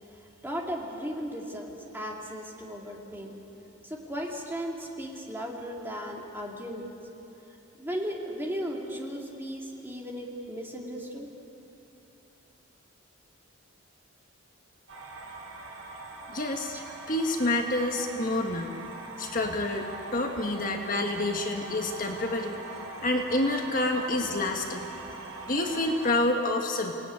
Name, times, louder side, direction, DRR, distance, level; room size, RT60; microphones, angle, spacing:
voice 1, 0.2-3.4 3.8-6.9 7.8-11.3 16.7-16.9, equal, 10° right, -1 dB, 2.7 m, -36 dB
sound 1, 14.9-26.2, right 3 dB, 75° right, 6.1 m, -42 dB
voice 2, 16.3-16.8 17.1-18.7 19.2-22.5 23.0-24.9 25.5-26.9, left 2 dB, 40° left, 3 dB, 1.6 m, -28 dB
28.5 x 18.0 x 9.6 m, 3.0 s
head